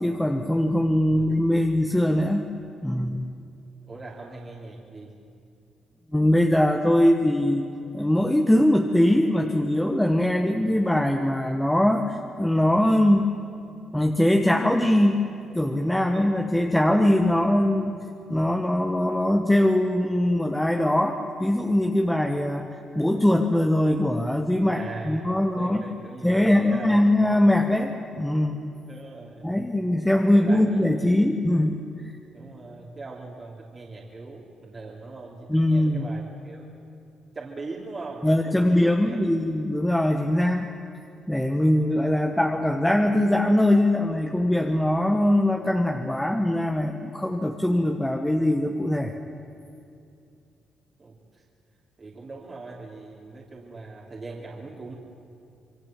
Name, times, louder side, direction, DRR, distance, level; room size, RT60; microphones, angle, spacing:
voice 1, 0.0-2.5 2.8-3.2 6.1-7.6 7.9-13.3 13.9-15.2 15.5-18.0 18.3-25.9 26.2-28.6 29.4-32.1 35.5-36.1 38.2-40.7 41.3-49.1, left 1 dB, 5° left, 3 dB, 1.5 m, -22 dB
voice 2, 3.9-5.1 24.7-27.0 28.9-29.5 30.3-31.2 32.3-36.7 37.3-39.2 51.0-51.4 52.0-54.9, right 3 dB, 35° right, -4 dB, 3.2 m, -40 dB
27.5 x 22.0 x 7.7 m, 2.6 s
cardioid pair, 90°, 0 cm